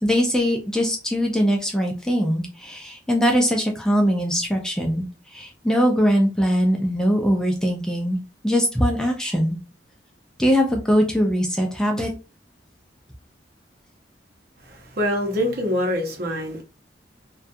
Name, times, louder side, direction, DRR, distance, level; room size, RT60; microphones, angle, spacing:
voice 1, 0.0-8.2 8.4-9.6 10.4-12.1, equal, 5° left, 0.4 m, -21 dB
voice 2, 14.6-16.6, equal, 55° right, 0.8 m, -25 dB
2.3 x 2.3 x 2.6 m
head